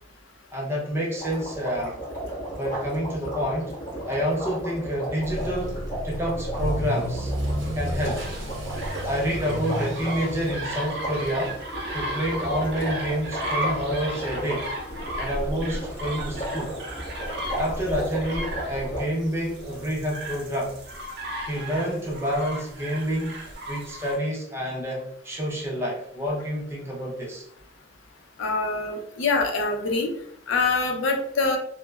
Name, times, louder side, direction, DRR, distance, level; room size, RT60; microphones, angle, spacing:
voice 1, 0.5-1.9 2.6-3.7 4.1-5.8 6.0-7.3 7.7-8.2 9.0-11.6 11.9-14.7 15.2-16.8 17.6-20.7 21.5-23.4 23.7-27.5, equal, 15° right, -3 dB, 0.6 m, -28 dB
sound 1, 1.2-19.0, right 1 dB, 45° left, 0.9 m, -35 dB
Motor vehicle (road) / Accelerating revving vroom, 5.2-20.1 20.4-20.8 21.3-21.4 21.7-21.8 22.1-22.2 23.5-23.6, equal, 85° right, 0.8 m, -35 dB
sound 2, 8.1-24.2, equal, 60° right, 0.5 m, -35 dB
voice 2, 28.4-30.1 30.5-31.6, left 3 dB, 85° left, 3 dB, 0.5 m, -24 dB
3.1 x 2.0 x 2.2 m, 0.71 s
head